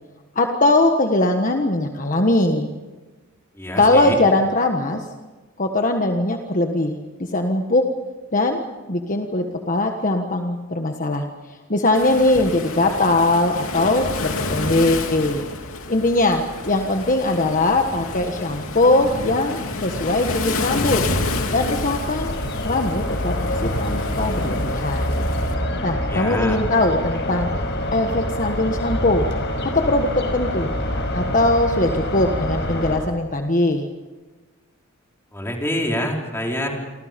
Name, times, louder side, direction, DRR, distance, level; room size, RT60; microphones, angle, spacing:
voice 1, 0.3-2.7 3.8-5.1 5.6-7.9 8.3-8.6 8.9-15.4 15.9-21.0 21.5-22.3 22.6-25.1 25.8-27.5 27.9-29.2 29.6-30.7 31.1-33.8, left 2 dB, 40° left, 4 dB, 1.4 m, -20 dB
voice 2, 3.5-4.2 26.1-26.6 35.3-36.7, left 1 dB, 10° left, 0 dB, 4.4 m, -26 dB
Waves surf, 11.9-25.5, left 3 dB, 80° left, 3.0 m, -29 dB
sound 1, 20.9-33.0, left 1 dB, 60° left, 5.2 m, -26 dB
29.0 x 25.0 x 5.3 m, 1.3 s
head